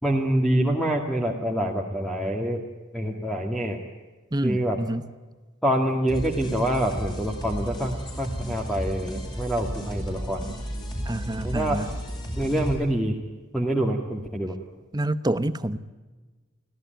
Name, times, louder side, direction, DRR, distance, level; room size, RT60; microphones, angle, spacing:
voice 1, 0.0-2.6 2.9-3.8 4.4-4.8 5.6-10.4 11.4-11.8 12.4-13.2 13.5-14.6, right 1 dB, ahead, 0 dB, 2.0 m, -26 dB
voice 2, 4.3-5.1 11.1-11.9 14.9-15.8, right 1 dB, 20° right, 13 dB, 0.9 m, -27 dB
sound 1, 6.1-12.7, equal, 20° left, 7.6 m, -33 dB
25.5 x 16.5 x 9.1 m, 1.3 s
head